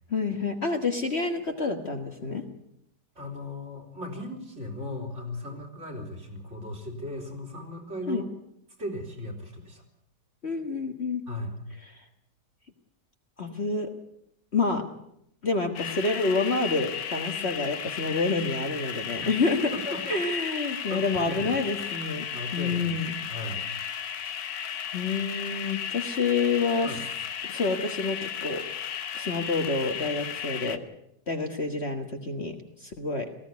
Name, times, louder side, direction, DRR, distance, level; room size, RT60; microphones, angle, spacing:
voice 1, 0.1-2.4 8.1-8.2 10.4-11.2 13.4-13.9 14.5-14.8 15.4-19.7 20.1-22.3 22.5-23.1 24.9-26.9 27.5-28.6 29.1-30.8 31.3-33.3, left 3 dB, 40° left, 4 dB, 1.8 m, -28 dB
voice 2, 3.2-8.2 8.8-9.8 11.3-11.6 19.2-19.3 19.9-20.2 20.9-21.5 22.3-23.0 23.3-23.6 24.2-24.4 26.8-27.0, left 1 dB, 40° right, 4 dB, 4.4 m, -37 dB
sound 1, 15.7-30.8, left 8 dB, 80° left, 1.8 m, -35 dB
19.0 x 16.0 x 9.5 m, 0.75 s
omnidirectional pair, 1.8 m